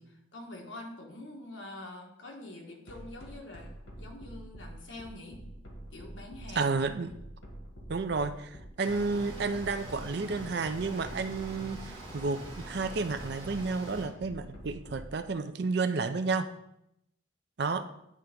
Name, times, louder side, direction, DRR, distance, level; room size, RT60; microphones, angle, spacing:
voice 1, 0.0-3.7 4.0-5.4 5.9-6.7, left 2 dB, 70° left, 1 dB, 1.4 m, -45 dB
sound 1, 2.9-15.1, right 1 dB, 85° left, 1.7 m, -46 dB
voice 2, 6.6-7.1 7.9-16.5 17.6-17.8, right 4 dB, 55° right, 10 dB, 0.5 m, -31 dB
sound 2, 8.8-14.1, right 2 dB, 25° right, 2.1 m, -44 dB
9.7 x 3.4 x 5.2 m, 0.81 s
head